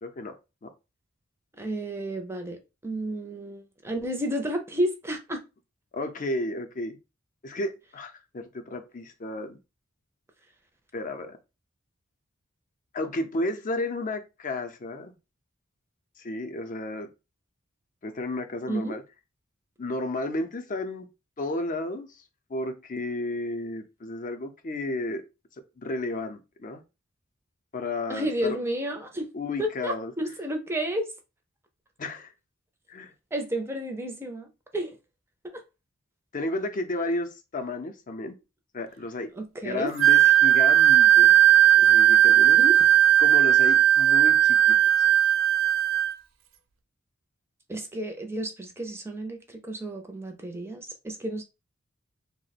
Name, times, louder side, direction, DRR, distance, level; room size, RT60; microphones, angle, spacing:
voice 1, 0.0-0.4 0.6-0.7 5.9-7.0 7.4-9.6 10.9-11.4 12.9-15.2 16.2-17.1 18.0-19.0 19.8-21.1 21.4-22.1 22.5-25.2 25.8-26.8 27.7-28.6 29.3-30.1 32.0-32.3 32.9-33.1 36.3-38.3 38.7-39.3 39.6-41.3 41.8-42.6 43.2-44.8, left 2 dB, 40° left, 0.5 m, -32 dB
voice 2, 1.6-5.4 18.7-19.0 28.1-29.3 29.6-31.1 33.3-35.0 35.5-35.6 39.4-39.9 42.6-42.9 47.7-51.4, right 1 dB, 10° right, 0.5 m, -31 dB
Wind instrument woodwind instrument, 40.0-46.1, right 11 dB, 70° right, 0.4 m, -17 dB
2.9 x 2.1 x 4.0 m
head